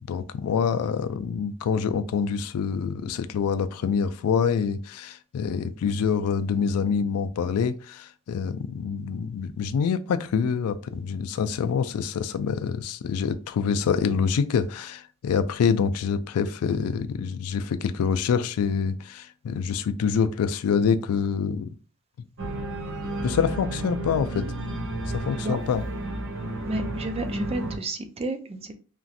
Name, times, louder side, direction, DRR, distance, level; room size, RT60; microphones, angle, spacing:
voice 1, 0.1-21.7 23.2-24.5 25.1-25.8, left 6 dB, 90° left, 0.3 m, -26 dB
Organ, 22.4-27.8, right 1 dB, 60° right, 0.7 m, -32 dB
voice 2, 26.7-28.7, right 2 dB, 30° right, 0.4 m, -31 dB
3.0 x 2.5 x 2.6 m
head